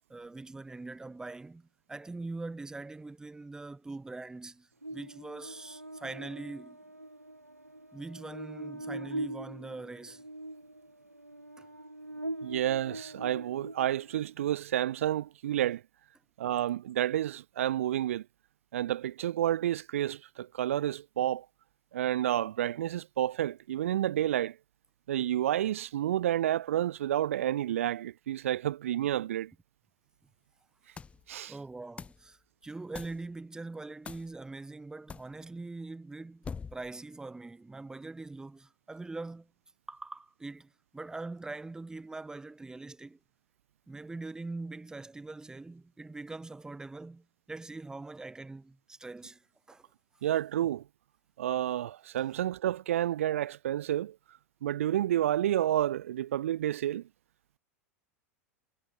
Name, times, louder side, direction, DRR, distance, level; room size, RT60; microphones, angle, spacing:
voice 1, 0.1-6.8 7.9-10.2 11.6-11.7 31.5-39.5 39.9-43.2 43.9-49.8, right 3 dB, 10° right, 1.3 m, -43 dB
Buzz, 4.8-14.3, right 1 dB, 90° right, 1.4 m, -42 dB
voice 2, 12.4-15.8 16.4-18.3 18.7-21.5 21.9-24.6 25.1-29.5 31.3-31.6 50.2-50.8 51.4-54.2 54.6-57.0, right 12 dB, 60° right, 0.6 m, -30 dB
sound 1, 31.0-31.3 32.0-32.3 32.9-33.3 34.0-34.3 35.1-35.3 36.4-36.9, left 5 dB, 15° left, 0.6 m, -43 dB
figure-of-eight pair, 85°, 8 cm